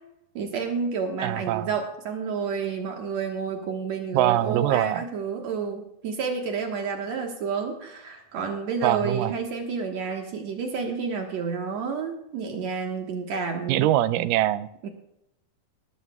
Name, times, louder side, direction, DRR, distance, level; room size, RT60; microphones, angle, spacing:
voice 1, 0.4-13.9 14.8-14.9, right 5 dB, 60° right, 3 dB, 2.2 m, -30 dB
voice 2, 1.2-1.7 4.1-5.1 8.8-9.3 13.7-14.7, right 14 dB, 80° right, 15 dB, 2.0 m, -23 dB
19.0 x 14.0 x 2.3 m, 0.82 s
omnidirectional pair, 4.1 m